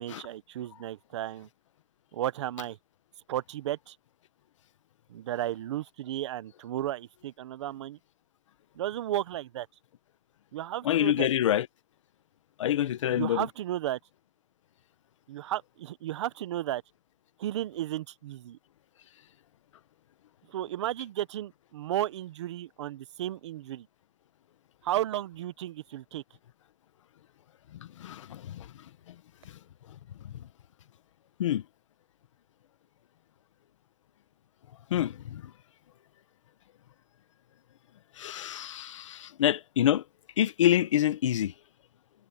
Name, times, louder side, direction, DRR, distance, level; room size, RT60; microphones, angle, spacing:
voice 1, 0.0-1.5 2.1-2.8 3.3-4.0 5.1-8.0 8.8-9.7 10.5-11.3 13.1-14.0 15.3-16.8 17.4-18.6 20.5-23.9 24.8-26.2, right 13 dB, 65° right, 0.9 m, -34 dB
voice 2, 10.8-11.6 12.6-13.5 28.0-28.7 30.2-30.3 31.4-31.6 34.9-35.4 38.2-40.0 40.4-41.5, left 11 dB, 75° left, 1.3 m, -26 dB
supercardioid pair, 165°, 16 cm